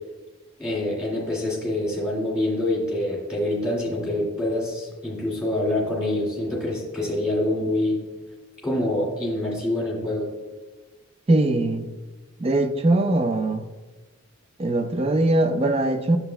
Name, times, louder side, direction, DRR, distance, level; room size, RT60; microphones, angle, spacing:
voice 1, 0.6-8.0 8.6-10.3, left 1 dB, 5° right, 1.9 m, -26 dB
voice 2, 11.3-11.9 12.4-13.6 14.6-16.2, right 2 dB, 25° right, 0.4 m, -21 dB
8.9 x 6.9 x 2.2 m
head